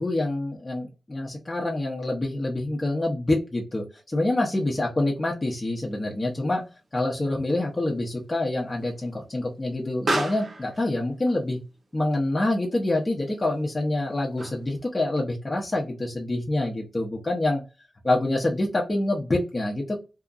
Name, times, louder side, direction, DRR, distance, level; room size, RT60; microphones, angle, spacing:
voice 1, 0.0-6.6 6.9-11.6 11.9-17.6 18.0-20.1, left 2 dB, 25° left, -2 dB, 0.6 m, -26 dB
Explosion, 5.9-14.9, right 2 dB, 65° right, 0.9 m, -37 dB
2.8 x 2.4 x 2.4 m, 0.29 s
wide cardioid pair, 145°, 0 cm